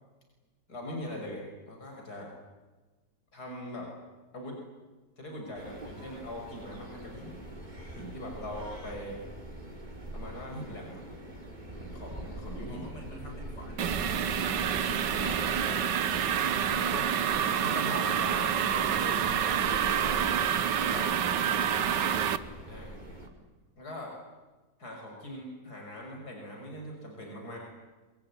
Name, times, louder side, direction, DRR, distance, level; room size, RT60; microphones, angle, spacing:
voice 1, 0.7-2.3 3.3-3.9 4.3-4.6 5.2-7.4 8.0-9.2 10.1-11.0 11.8-12.9 14.6-14.8 15.1-15.8 16.4-17.1 17.6-20.2 20.7-21.2 21.4-22.1 22.7-22.9 23.8-24.2 24.8-27.6, left 1 dB, 60° left, 0 dB, 6.6 m, -41 dB
sound 1, 5.5-23.3, right 1 dB, 25° right, 4.5 m, -43 dB
voice 2, 12.7-15.0 16.0-17.4, equal, 90° left, 1 dB, 8.1 m, -49 dB
sound 2, 13.8-22.4, right 8 dB, 80° right, 1.8 m, -28 dB
27.0 x 21.5 x 10.0 m, 1.2 s
omnidirectional pair, 1.8 m